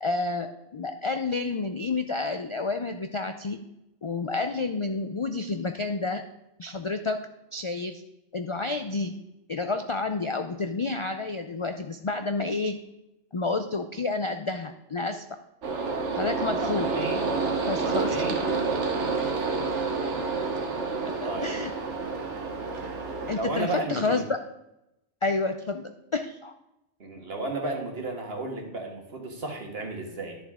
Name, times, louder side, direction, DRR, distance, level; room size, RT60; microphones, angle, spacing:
voice 1, 0.0-3.6 4.0-6.2 6.6-7.2 7.5-8.0 8.3-9.1 9.5-12.8 13.3-15.2 16.1-16.9 17.7-18.2 21.0-21.7 23.3-24.4 25.2-26.5, left 3 dB, 50° left, 7 dB, 0.3 m, -29 dB
sound 1, 15.6-23.4, right 4 dB, 85° right, 1.5 m, -29 dB
voice 2, 16.6-17.2 17.8-18.4 19.3-19.5 20.2-20.3 21.3-21.6 23.3-24.2 27.0-30.4, right 2 dB, 60° right, 2 dB, 1.8 m, -33 dB
11.5 x 7.2 x 3.6 m, 0.90 s
omnidirectional pair, 1.2 m